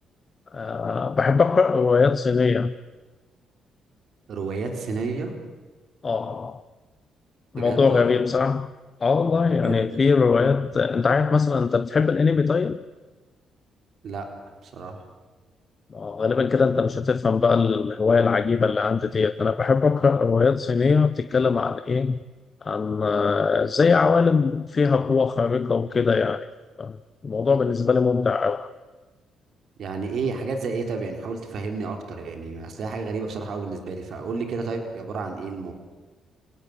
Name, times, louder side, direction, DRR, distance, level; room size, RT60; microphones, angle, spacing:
voice 1, 0.5-2.7 6.0-6.6 7.5-8.7 9.0-12.8 15.9-22.1 22.6-26.5 26.8-27.0 27.2-28.7, left 5 dB, 35° left, 0.8 m, -21 dB
voice 2, 4.3-5.3 7.6-8.2 9.6-10.0 14.0-14.3 14.6-15.0 29.8-35.7, right 4 dB, 65° right, 3.9 m, -31 dB
28.5 x 18.5 x 8.7 m
cardioid pair, 90°, 0 cm